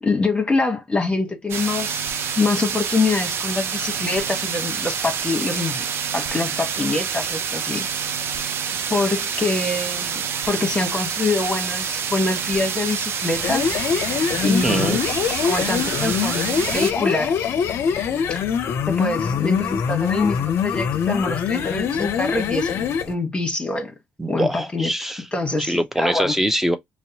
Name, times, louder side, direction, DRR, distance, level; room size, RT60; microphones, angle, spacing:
voice 1, 0.0-5.8 6.1-7.9 8.9-10.2 10.5-13.6 14.4-15.0 15.4-17.3 18.3-18.4 18.9-23.9 24.3-24.9 25.3-26.4, left 3 dB, 20° left, 1.1 m, -24 dB
sound 1, 1.5-16.9, right 7 dB, 55° right, 0.5 m, -27 dB
sound 2, 13.3-23.1, left 7 dB, 60° left, 0.5 m, -24 dB
voice 2, 14.6-15.0 24.2-25.2 25.6-26.8, right 1 dB, 5° right, 0.6 m, -23 dB
2.6 x 2.1 x 2.7 m
hypercardioid pair, 55°, 5 cm